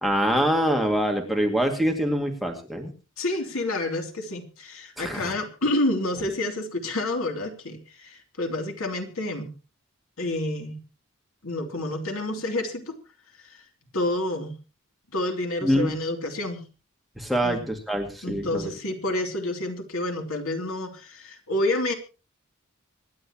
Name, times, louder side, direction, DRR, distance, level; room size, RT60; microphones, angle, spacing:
voice 1, 0.0-2.9 5.0-5.3 15.6-15.9 17.2-18.7, equal, ahead, 3 dB, 2.2 m, -24 dB
voice 2, 3.2-9.5 10.2-10.8 11.4-13.0 13.4-13.6 13.9-14.5 15.1-16.6 17.4-17.6 18.2-21.9, left 1 dB, 70° left, 3 dB, 3.0 m, -29 dB
25.5 x 11.0 x 3.0 m, 0.33 s
head